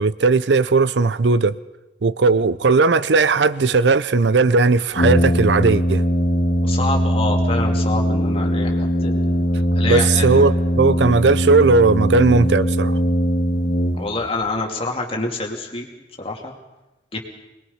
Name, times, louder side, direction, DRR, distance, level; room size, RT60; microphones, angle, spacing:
voice 1, 0.0-1.5 2.0-6.0 9.8-13.0, right 3 dB, 75° right, 0.6 m, -17 dB
Brass instrument, 4.9-14.4, equal, 60° left, 2.5 m, -20 dB
voice 2, 6.6-9.2 9.7-10.4 13.9-15.9 16.2-16.5 17.1-17.2, left 2 dB, 35° left, 2.9 m, -27 dB
22.5 x 21.0 x 5.7 m
head